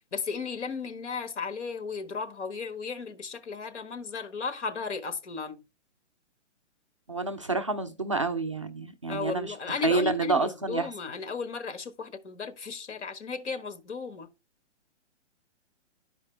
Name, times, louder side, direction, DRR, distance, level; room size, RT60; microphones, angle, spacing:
voice 1, 0.1-5.6 9.1-14.3, left 5 dB, 75° left, 1.5 m, -35 dB
voice 2, 7.1-9.5 9.8-10.9, right 3 dB, 30° right, 0.4 m, -28 dB
11.0 x 4.9 x 3.3 m
hypercardioid pair, 165°, 36 cm